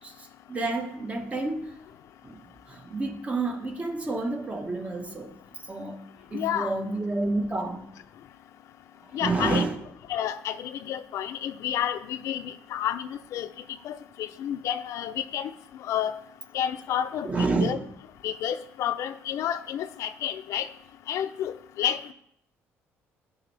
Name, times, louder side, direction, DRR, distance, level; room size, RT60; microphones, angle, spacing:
voice 1, 0.0-1.7 2.2-5.4 5.7-7.9 9.1-9.7 17.2-17.9, right 3 dB, 25° right, 1.4 m, -30 dB
voice 2, 6.3-6.7 9.1-9.6 10.1-13.5 13.8-15.5 15.8-16.2 16.5-17.8 18.2-20.7 21.1-22.1, left 10 dB, 70° left, 0.6 m, -30 dB
13.0 x 5.4 x 3.4 m
cardioid pair, 95°, 5 cm